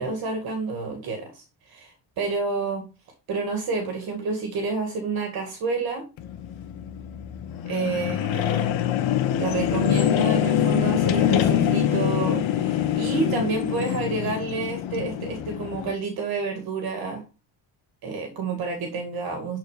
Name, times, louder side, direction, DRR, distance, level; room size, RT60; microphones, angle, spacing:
voice 1, 0.0-2.9 3.3-6.1 7.7-8.8 9.0-17.2 18.0-19.6, right 4 dB, 50° right, 5 dB, 2.2 m, -29 dB
sound 1, 6.2-15.9, left 10 dB, 90° left, 1.4 m, -24 dB
12.0 x 4.5 x 5.0 m, 0.31 s
cardioid pair, 175°, 45 cm